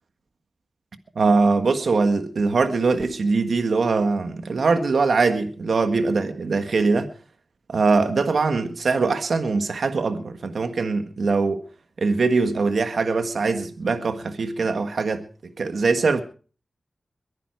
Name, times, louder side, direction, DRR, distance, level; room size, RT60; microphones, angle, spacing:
voice 1, 1.1-7.1 7.7-11.6 12.0-16.2, right 4 dB, 75° right, 1.7 m, -22 dB
22.5 x 9.8 x 4.7 m
cardioid pair, 45°, 0 cm